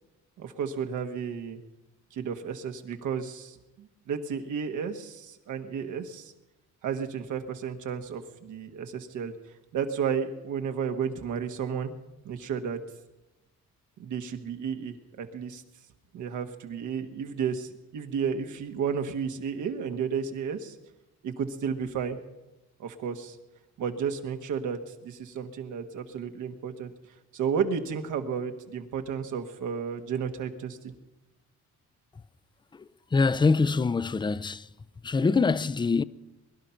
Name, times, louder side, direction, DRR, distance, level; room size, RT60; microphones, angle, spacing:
voice 1, 0.4-1.6 2.1-6.3 6.8-9.3 9.7-11.9 12.2-12.8 14.0-15.6 16.1-20.7 21.2-22.2 22.8-23.4 23.8-26.9 27.3-30.9, right 7 dB, 80° right, 1.5 m, -32 dB
voice 2, 32.7-34.7 35.0-36.0, left 4 dB, 15° left, 0.4 m, -25 dB
22.0 x 11.0 x 5.8 m
cardioid pair, 90°, 30 cm